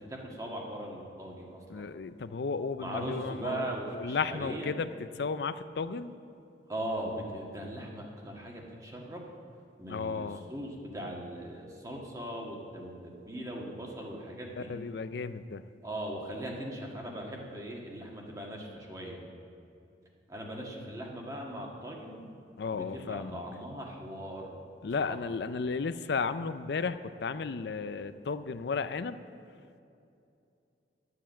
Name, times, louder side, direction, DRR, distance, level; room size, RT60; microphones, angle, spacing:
voice 1, 0.1-1.9 2.8-4.8 6.7-9.3 9.8-14.7 15.8-19.2 20.3-22.3 22.7-24.6 25.0-25.2, right 1 dB, 20° right, -1 dB, 1.6 m, -39 dB
voice 2, 1.7-4.9 5.2-6.1 9.9-10.4 14.6-15.7 22.6-23.3 24.8-29.2, left 5 dB, 65° left, 13 dB, 0.4 m, -34 dB
11.5 x 7.9 x 7.3 m, 2.6 s
head